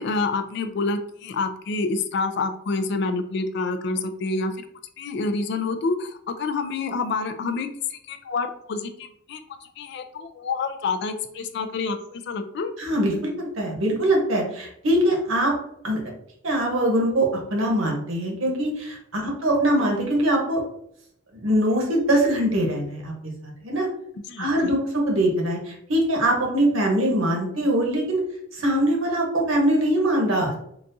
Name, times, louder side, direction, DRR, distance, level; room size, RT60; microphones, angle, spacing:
voice 1, 0.0-4.5 5.0-12.7 24.3-24.7, left 3 dB, 55° left, 8 dB, 0.3 m, -28 dB
voice 2, 12.8-15.5 15.8-16.0 16.4-20.6 21.3-23.9 24.4-28.2 28.5-30.6, right 1 dB, 80° right, -1 dB, 0.9 m, -22 dB
4.0 x 2.3 x 2.6 m, 0.72 s
head